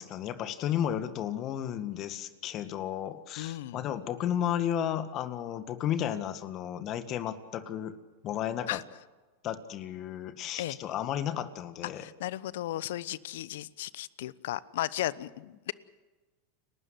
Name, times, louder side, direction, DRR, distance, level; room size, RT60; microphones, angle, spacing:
voice 1, 0.0-7.9 8.2-8.8 9.4-12.1, left 10 dB, 45° left, 11 dB, 1.9 m, -33 dB
voice 2, 3.4-3.8 8.7-8.8 10.6-10.8 11.9-15.7, left 14 dB, 70° left, 19 dB, 0.9 m, -35 dB
29.5 x 12.5 x 8.0 m, 1.2 s
hypercardioid pair, 100°, 0 cm